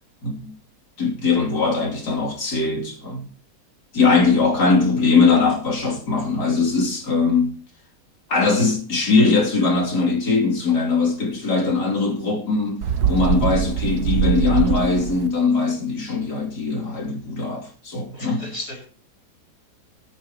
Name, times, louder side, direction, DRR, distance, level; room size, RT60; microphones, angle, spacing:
voice 1, 0.2-0.5 1.0-3.3 3.9-7.6 8.3-18.4, left 4 dB, 80° left, 3.5 m, -20 dB
Bird, 12.8-15.3, right 8 dB, 75° right, 1.4 m, -22 dB
voice 2, 18.1-18.9, left 1 dB, 45° left, 5.3 m, -34 dB
25.0 x 8.7 x 3.0 m
omnidirectional pair, 1.7 m